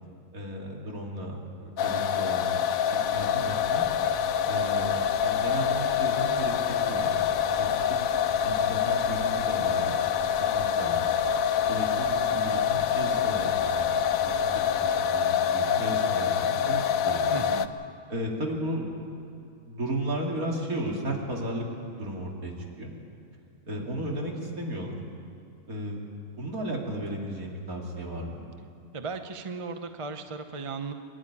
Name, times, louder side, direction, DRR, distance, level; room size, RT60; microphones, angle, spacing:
voice 1, 0.3-2.5 3.1-3.9 4.5-6.6 6.9-7.1 7.6-8.1 8.4-9.9 10.2-11.1 11.7-14.0 14.2-14.4 15.0-17.4 18.1-19.1 19.3-21.7 22.0-23.0 23.7-25.0 25.7-26.0 26.4-28.4, right 1 dB, 60° right, -1 dB, 3.2 m, -34 dB
sound 1, 1.8-17.7, left 8 dB, 65° left, 1.0 m, -26 dB
sound 2, 3.0-14.9, left 3 dB, 35° left, 3.2 m, -50 dB
voice 2, 17.3-17.7 28.9-30.9, right 4 dB, 25° right, 7 dB, 0.7 m, -36 dB
24.5 x 11.5 x 10.0 m, 2.5 s
omnidirectional pair, 1.7 m